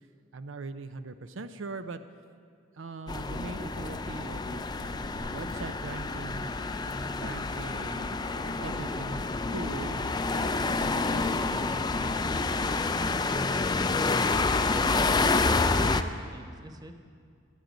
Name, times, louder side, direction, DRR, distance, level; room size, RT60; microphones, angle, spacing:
voice 1, 0.3-2.0 2.7-6.5 7.2-9.2 9.5-11.3, right 3 dB, 85° right, 10 dB, 0.6 m, -41 dB
sound 1, 3.1-16.0, left 3 dB, 20° left, 0.4 m, -28 dB
voice 2, 12.1-12.5 14.7-17.1, right 2 dB, 20° right, 6 dB, 0.8 m, -42 dB
20.0 x 9.3 x 5.1 m, 2.2 s
head